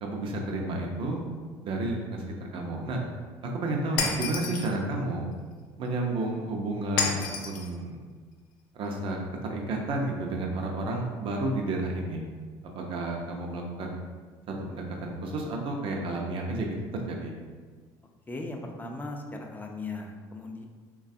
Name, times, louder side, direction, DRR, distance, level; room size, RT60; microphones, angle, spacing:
voice 1, 0.0-1.2 1.6-3.0 3.4-5.3 5.8-8.0 8.8-12.3 12.7-13.9 14.5-17.3, right 2 dB, 50° right, 1 dB, 0.6 m, -31 dB
Shatter, 4.0-4.7 7.0-7.7, left 5 dB, 85° left, 0.4 m, -29 dB
voice 2, 18.3-20.6, left 2 dB, 15° left, 2 dB, 0.4 m, -38 dB
3.1 x 2.3 x 2.6 m, 1.5 s
hypercardioid pair, 75°, 11 cm